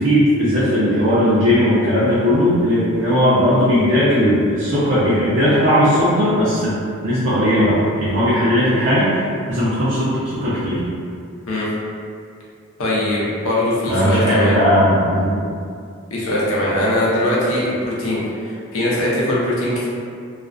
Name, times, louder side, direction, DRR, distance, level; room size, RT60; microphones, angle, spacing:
voice 1, 0.0-6.7 7.0-9.1 9.5-10.1 10.4-10.8 13.9-15.4, equal, 65° right, -11 dB, 0.5 m, -17 dB
voice 2, 12.8-14.6 16.1-19.9, left 1 dB, 85° left, -6 dB, 0.6 m, -21 dB
2.4 x 2.1 x 2.4 m, 2.3 s
head